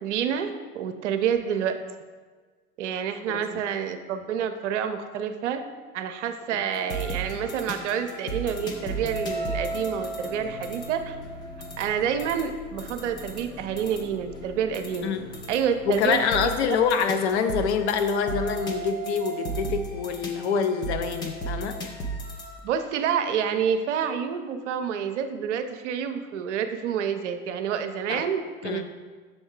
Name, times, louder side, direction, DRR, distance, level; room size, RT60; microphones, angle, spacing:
voice 1, 0.0-1.8 2.8-5.6 5.9-11.2 11.8-15.2 15.5-16.8 22.6-28.9, right 8 dB, 55° right, 8 dB, 0.6 m, -28 dB
voice 2, 3.3-3.6 6.5-6.6 15.0-15.3 15.9-21.8 28.1-28.2 28.6-28.9, left 6 dB, 50° left, 8 dB, 0.6 m, -26 dB
sound 1, 6.7-22.6, right 2 dB, 10° left, 0.3 m, -36 dB
sound 2, 9.0-16.6 16.9-17.4, right 1 dB, 10° right, 0.8 m, -37 dB
6.6 x 3.5 x 4.6 m, 1.5 s
figure-of-eight pair, 90°, 43 cm